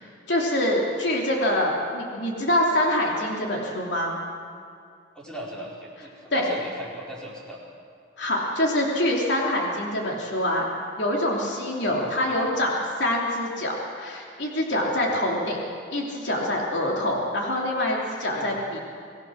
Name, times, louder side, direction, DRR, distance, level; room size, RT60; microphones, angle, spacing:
voice 1, 0.3-4.2 6.3-6.5 8.2-10.6 11.0-15.6 15.9-18.8, left 1 dB, 65° left, -2 dB, 3.2 m, -25 dB
voice 2, 5.1-7.6 11.8-12.1 18.3-18.6, right 1 dB, 5° left, -5 dB, 4.4 m, -39 dB
26.0 x 18.5 x 6.4 m, 2.3 s
head